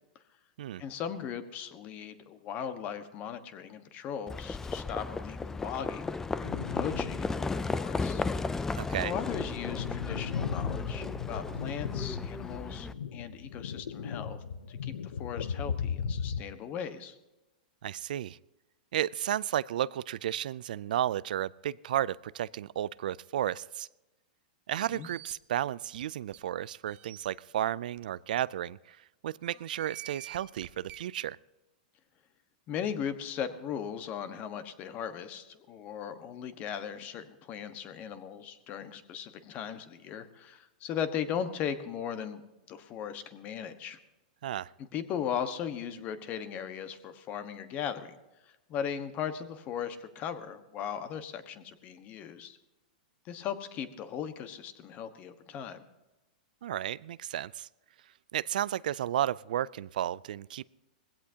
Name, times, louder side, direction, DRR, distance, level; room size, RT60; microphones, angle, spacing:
voice 1, 0.8-8.2 8.7-17.2 24.8-25.1 32.7-42.4 42.7-44.0 44.8-48.2 48.7-52.6 53.2-55.8, left 8 dB, 35° left, 10 dB, 1.3 m, -38 dB
Livestock farm animals working animals, 4.3-12.9, left 3 dB, 10° left, 0.4 m, -35 dB
sound 1, 6.4-7.3 7.7-7.8 8.5-16.4, left 7 dB, 90° left, 0.7 m, -37 dB
voice 2, 8.8-9.1 17.8-18.4 18.9-23.9 24.7-29.0 29.2-31.4 44.4-44.7 56.6-57.7 58.3-60.7, right 11 dB, 75° right, 20 dB, 0.4 m, -33 dB
sound 2, 24.8-25.3 25.9-26.0 26.3-26.4 26.9-27.3 28.0-28.1 28.4-28.5 29.5-31.0, right 15 dB, 35° right, 0.7 m, -48 dB
20.5 x 16.5 x 2.8 m, 1.0 s
hypercardioid pair, 140°, 5 cm